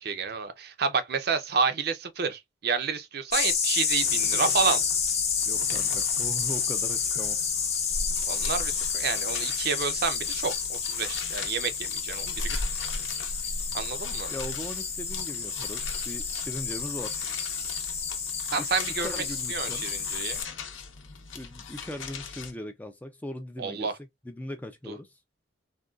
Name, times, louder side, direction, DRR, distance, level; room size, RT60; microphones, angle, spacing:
voice 1, 0.0-4.8 8.3-12.6 13.7-14.3 18.5-19.2 19.5-20.4 23.6-24.0 24.9-25.0, right 5 dB, 50° right, 0.5 m, -29 dB
sound 1, 3.3-20.4, left 6 dB, 35° left, 0.8 m, -29 dB
sound 2, 3.8-22.5, left 6 dB, 75° left, 0.7 m, -42 dB
voice 2, 5.5-7.4 14.3-17.2 18.6-18.7 19.0-19.9 21.3-23.9 24.2-25.1, left 1 dB, 10° left, 0.3 m, -39 dB
3.6 x 2.3 x 2.2 m
head